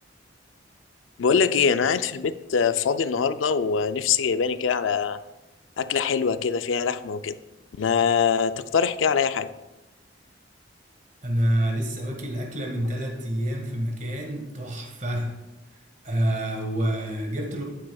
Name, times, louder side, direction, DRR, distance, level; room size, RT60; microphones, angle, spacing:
voice 1, 1.2-5.2 5.8-7.4 7.8-9.5, left 6 dB, 85° left, 12 dB, 0.4 m, -23 dB
voice 2, 11.2-15.3 16.0-17.6, right 1 dB, 40° right, 2 dB, 1.6 m, -27 dB
12.0 x 8.7 x 2.3 m, 1.0 s
head